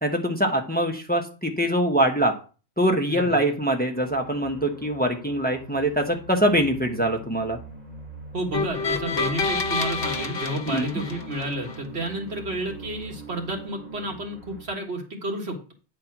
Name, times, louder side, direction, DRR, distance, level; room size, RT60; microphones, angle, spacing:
voice 1, 0.0-2.3 2.8-7.6 10.7-10.8, right 1 dB, 10° left, 3 dB, 1.1 m, -23 dB
sound 1, 3.9-14.6, right 1 dB, 40° right, 2.2 m, -42 dB
voice 2, 8.3-15.7, right 1 dB, 70° right, 2 dB, 2.0 m, -31 dB
sound 2, 8.5-11.8, left 4 dB, 60° left, 1.1 m, -28 dB
9.6 x 4.3 x 6.0 m, 0.35 s
omnidirectional pair, 1.1 m